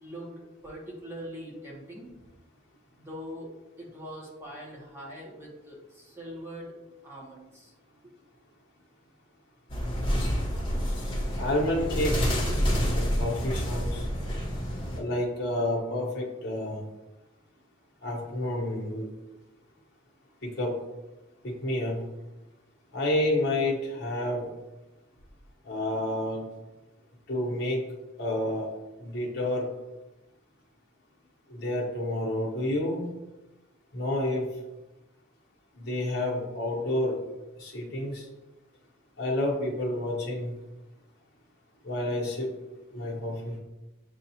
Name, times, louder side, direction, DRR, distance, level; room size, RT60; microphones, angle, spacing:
voice 1, 0.0-2.1 3.0-3.5 3.8-6.7 7.0-7.7 10.3-10.4, equal, 10° right, -4 dB, 0.9 m, -42 dB
sound 1, 9.7-15.0, equal, 25° left, 0.8 m, -28 dB
voice 2, 11.4-12.2 12.4-12.6 12.9-14.1 14.9-16.8 18.0-19.1 20.4-20.7 21.4-22.0 22.9-24.5 25.7-26.5 27.3-27.8 28.2-28.7 29.0-29.7 31.5-33.0 33.9-34.5 35.8-37.2 37.6-38.2 39.2-40.5 41.8-42.5 42.9-43.6, left 1 dB, 50° left, -2 dB, 0.9 m, -29 dB
7.0 x 2.3 x 2.7 m, 1.0 s
head